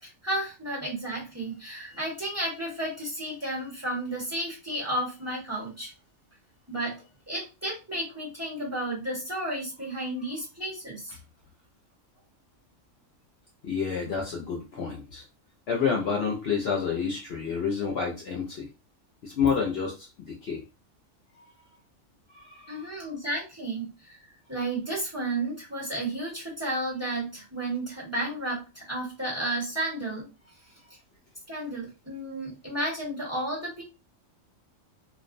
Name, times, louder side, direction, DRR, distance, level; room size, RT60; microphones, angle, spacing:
voice 1, 0.0-5.9 6.7-6.9 7.3-11.2 22.7-24.2 24.5-30.3 31.5-33.8, right 1 dB, 10° right, -6 dB, 1.1 m, -32 dB
voice 2, 13.6-15.2 15.7-18.7 19.2-20.6 21.4-21.5 22.3-23.1, left 6 dB, 60° left, -1 dB, 0.7 m, -29 dB
2.5 x 2.1 x 2.5 m, 0.29 s
omnidirectional pair, 1.4 m